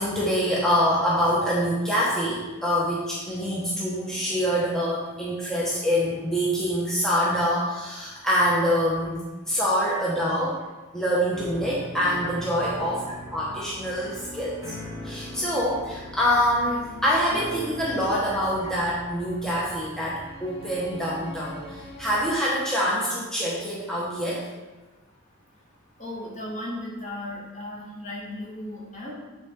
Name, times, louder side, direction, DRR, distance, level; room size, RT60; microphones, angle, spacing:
voice 1, 0.0-9.2 9.5-10.5 10.9-13.0 13.3-14.6 15.0-24.4, equal, 5° left, -8 dB, 1.0 m, -25 dB
sound 1, 11.3-22.3, equal, 65° left, 1.7 m, -40 dB
voice 2, 26.0-29.1, left 1 dB, 35° left, -4 dB, 1.7 m, -36 dB
8.1 x 4.1 x 3.7 m, 1.2 s
head